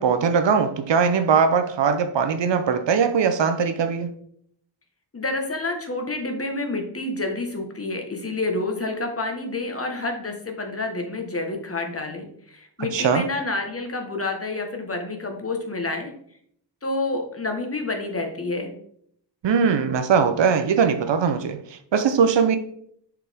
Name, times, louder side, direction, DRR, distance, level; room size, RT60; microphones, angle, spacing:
voice 1, 0.0-4.1 12.9-13.2 19.4-22.6, right 6 dB, 75° right, 0.7 m, -20 dB
voice 2, 5.1-16.1 16.8-18.7, left 2 dB, 30° left, 1.3 m, -28 dB
6.7 x 4.9 x 3.5 m
cardioid pair, 70°, 45 cm